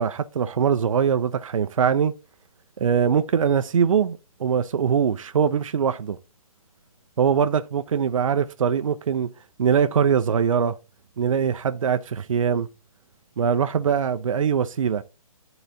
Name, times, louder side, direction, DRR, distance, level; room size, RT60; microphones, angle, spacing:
voice 1, 0.0-2.1 2.8-6.2 7.2-9.3 9.6-10.7 11.2-12.7 13.4-15.0, right 7 dB, 60° right, 0.5 m, -22 dB
10.5 x 3.9 x 2.6 m
hypercardioid pair, 175°, 19 cm